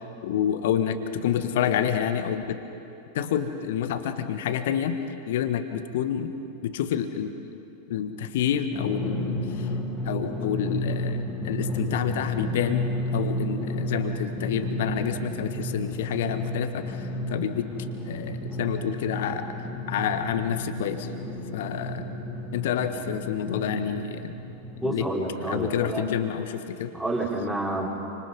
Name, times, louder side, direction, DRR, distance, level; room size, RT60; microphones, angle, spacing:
voice 1, 0.2-2.6 3.1-5.0 5.3-6.3 6.6-7.3 7.9-9.7 10.0-12.9 13.1-17.7 18.0-19.5 19.9-21.1 21.5-22.1 22.5-24.3 24.8-25.1 25.4-26.9, left 9 dB, 55° left, 9 dB, 1.4 m, -28 dB
Drum, 8.7-24.9, equal, 10° left, 3.6 m, -32 dB
voice 2, 24.8-26.0 26.9-27.9, right 2 dB, 10° right, -3 dB, 4.5 m, -29 dB
29.0 x 26.0 x 5.4 m, 2.8 s
figure-of-eight pair, 90°, 0 cm